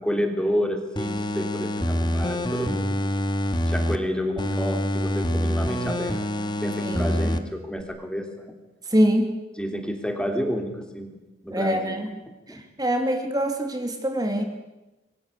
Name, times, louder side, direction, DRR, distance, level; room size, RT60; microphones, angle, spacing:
voice 1, 0.0-3.0 3.7-8.5 9.5-12.0 12.5-12.6, equal, 5° left, 5 dB, 3.0 m, -30 dB
sound 1, 1.0-4.0 4.4-7.4 7.8-7.9, left 1 dB, 25° left, 1.9 m, -26 dB
voice 2, 8.9-9.3 11.5-12.1 12.8-14.4, equal, 20° right, 5 dB, 2.8 m, -23 dB
27.0 x 22.5 x 8.5 m, 1.0 s
head